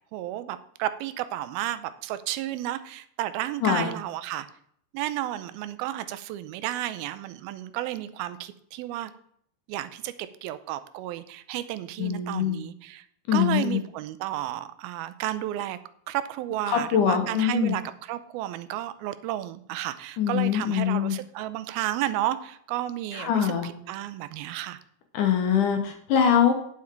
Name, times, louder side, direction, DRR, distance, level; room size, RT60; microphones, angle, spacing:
voice 1, 0.1-4.5 4.9-9.1 9.7-13.1 13.3-15.8 16.1-24.8, right 13 dB, 85° right, 13 dB, 2.5 m, -32 dB
voice 2, 12.0-12.6 13.3-13.8 16.7-17.8 20.2-21.2 23.2-23.7 25.1-26.5, left 8 dB, 65° left, 5 dB, 2.4 m, -23 dB
9.7 x 7.3 x 4.5 m, 0.66 s
omnidirectional pair, 4.2 m